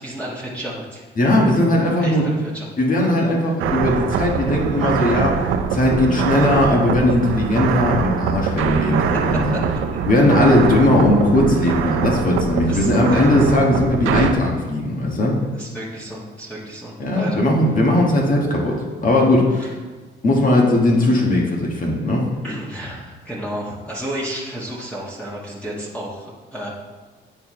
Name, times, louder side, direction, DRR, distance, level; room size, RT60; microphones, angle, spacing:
voice 1, 0.0-1.1 1.8-2.7 8.9-9.0 12.6-13.3 15.6-17.4 19.6-19.7 22.4-26.7, right 1 dB, 5° left, -6 dB, 1.4 m, -32 dB
voice 2, 1.1-2.3 2.8-5.4 5.7-9.6 10.0-15.3 17.0-18.7 19.0-19.7 20.2-22.2, left 1 dB, 45° left, -2 dB, 1.5 m, -18 dB
sound 1, 3.6-14.3, right 7 dB, 90° right, 0.5 m, -23 dB
9.6 x 4.2 x 3.1 m, 1.3 s
cardioid pair, 90°, 20 cm